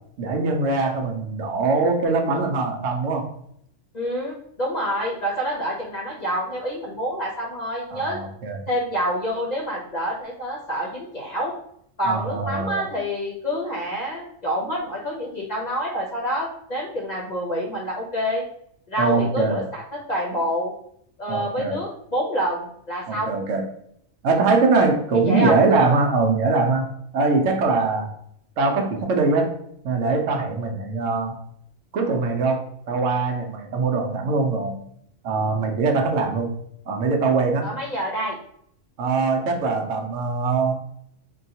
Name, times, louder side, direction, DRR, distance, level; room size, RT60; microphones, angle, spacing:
voice 1, 0.2-3.3 7.9-8.6 12.0-12.9 19.0-19.6 21.3-21.8 23.1-23.7 24.2-26.9 27.1-28.1 28.6-29.5 29.8-31.3 31.9-34.8 35.2-36.5 36.9-37.7 39.0-40.7, right 3 dB, 75° right, 3 dB, 0.9 m, -22 dB
voice 2, 3.9-8.2 8.7-11.5 12.0-18.4 18.9-20.7 21.2-23.3 25.2-25.6 37.6-38.4, equal, 40° left, -4 dB, 0.7 m, -27 dB
4.0 x 2.2 x 2.7 m, 0.69 s
omnidirectional pair, 1.3 m